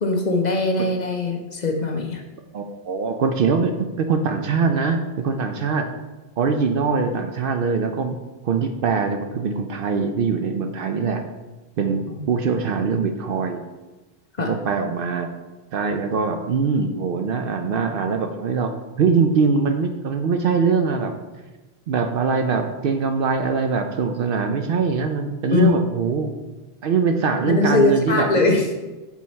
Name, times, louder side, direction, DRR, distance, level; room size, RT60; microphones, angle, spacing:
voice 1, 0.0-2.2 12.1-12.2 14.4-14.5 25.5-25.8 27.5-28.7, left 3 dB, 45° left, 2 dB, 0.7 m, -21 dB
voice 2, 2.5-5.9 6.4-8.2 8.4-11.2 11.8-13.6 14.4-15.3 15.7-18.7 19.0-21.1 21.9-26.3 26.8-28.4, right 5 dB, 65° right, 6 dB, 0.7 m, -22 dB
6.1 x 4.0 x 4.2 m, 1.1 s
omnidirectional pair, 1.1 m